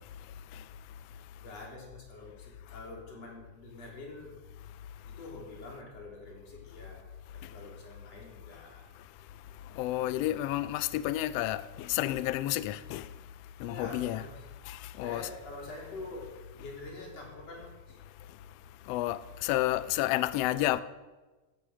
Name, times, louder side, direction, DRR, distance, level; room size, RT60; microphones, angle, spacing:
voice 1, 1.4-4.4 5.1-8.9 13.6-14.4 15.0-18.0, left 2 dB, 55° left, 4.8 m, -46 dB
voice 2, 9.8-13.0 13.6-14.2 15.0-15.3 18.9-20.8, left 14 dB, 85° left, 1.4 m, -30 dB
16.0 x 13.0 x 6.3 m
omnidirectional pair, 3.5 m